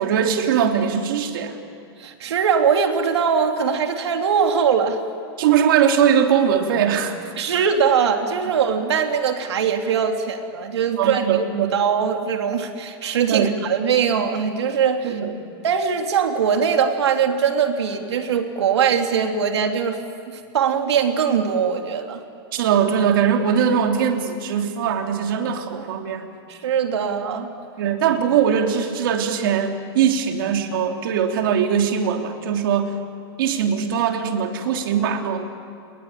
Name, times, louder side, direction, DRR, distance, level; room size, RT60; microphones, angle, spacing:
voice 1, 0.0-1.6 5.4-7.1 10.9-11.8 13.3-13.6 15.0-15.3 22.5-26.3 27.8-32.9 33.4-35.4, right 8 dB, 55° right, 3 dB, 3.2 m, -21 dB
voice 2, 2.0-5.0 7.4-11.4 11.7-15.1 15.6-20.0 20.3-22.2 25.4-25.5 25.7-25.8 26.5-27.5, right 7 dB, 85° right, 4 dB, 3.3 m, -21 dB
30.0 x 21.0 x 9.1 m, 2.5 s
supercardioid pair, 165°, 14 cm